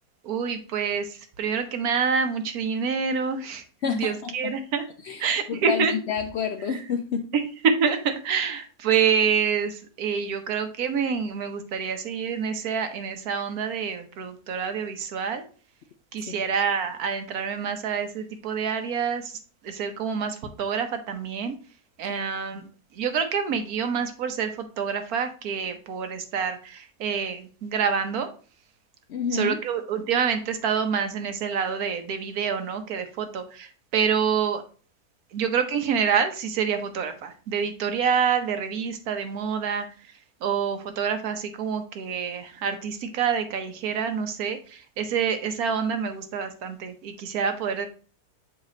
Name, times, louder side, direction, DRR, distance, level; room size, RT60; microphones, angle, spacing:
voice 1, 0.2-4.8 5.2-5.9 6.7-6.8 7.6-15.4 16.1-21.6 22.0-22.7 22.9-28.3 29.3-34.6 35.3-40.1 40.4-47.9, right 6 dB, 75° right, 1.3 m, -27 dB
voice 2, 3.8-4.5 5.0-7.3 16.2-16.3 22.1-22.2 22.5-22.6 29.1-29.6, left 6 dB, 70° left, 0.6 m, -30 dB
7.3 x 2.9 x 5.1 m
omnidirectional pair, 1.6 m